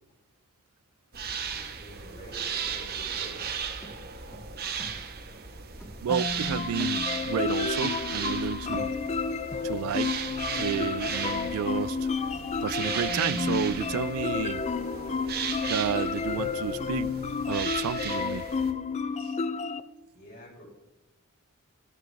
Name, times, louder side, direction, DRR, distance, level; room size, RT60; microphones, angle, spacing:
sound 1, 1.1-18.7, right 6 dB, 45° right, 1.3 m, -36 dB
voice 1, 1.5-3.4 20.1-20.6, equal, 45° left, 5.1 m, -48 dB
sound 2, 2.8-5.5 5.8-7.5 7.8-9.4 9.7-15.4 15.7-15.8, equal, 15° left, 2.3 m, -49 dB
voice 2, 6.0-8.9 9.6-10.2 10.6-12.0 12.6-14.6 15.7-17.1 17.5-18.4, right 9 dB, 75° right, 0.3 m, -31 dB
sound 3, 6.1-19.8, left 5 dB, 30° left, 0.5 m, -31 dB
14.0 x 11.0 x 3.4 m
head